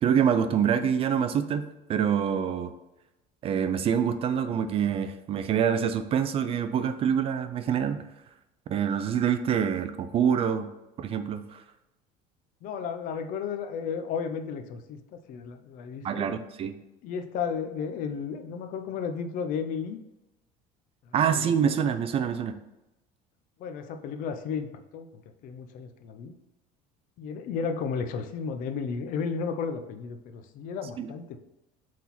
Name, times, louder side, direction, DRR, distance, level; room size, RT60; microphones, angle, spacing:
voice 1, 0.0-2.7 3.4-8.0 8.7-10.7 11.0-11.6 16.0-16.8 21.1-22.6 31.0-31.1, right 8 dB, 35° right, 10 dB, 0.4 m, -26 dB
voice 2, 12.6-15.0 15.3-16.3 17.0-20.0 23.6-25.1 25.4-26.3 27.2-31.4, left 6 dB, 50° left, 8 dB, 0.6 m, -33 dB
6.2 x 4.2 x 4.1 m, 0.95 s
cardioid pair, 150°, 17 cm